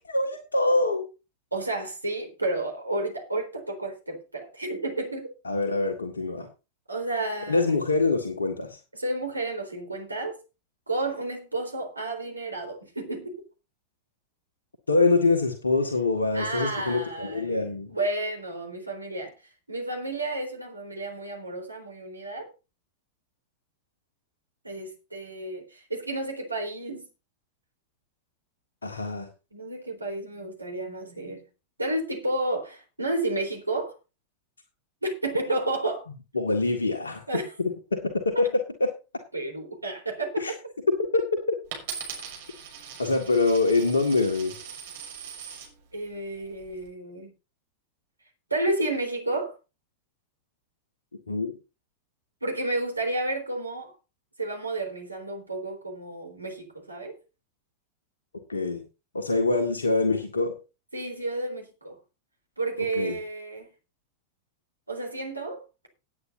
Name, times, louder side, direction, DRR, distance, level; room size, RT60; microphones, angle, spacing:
voice 1, 0.1-1.0 5.5-6.5 7.5-8.8 14.9-17.9 28.8-29.3 36.3-37.2 37.6-38.9 40.4-40.5 40.9-41.2 41.5-41.6 43.0-44.6 51.3-51.5 58.5-58.8 59.1-60.5 63.0-63.2, left 3 dB, 75° left, 1.8 m, -24 dB
voice 2, 1.5-5.3 6.9-7.7 9.0-10.4 10.9-13.4 16.3-19.3 19.7-22.5 24.6-27.1 29.5-31.4 31.8-34.0 35.0-36.1 37.3-37.5 39.3-40.4 45.9-47.3 48.5-49.6 52.4-53.9 54.4-57.1 60.9-62.0 62.6-63.7 64.9-65.9, right 2 dB, 85° right, 3.8 m, -31 dB
Coin (dropping), 41.7-45.7 46.4-46.8, right 7 dB, 55° right, 6.4 m, -40 dB
18.5 x 9.0 x 2.7 m
figure-of-eight pair, 90°, 0 cm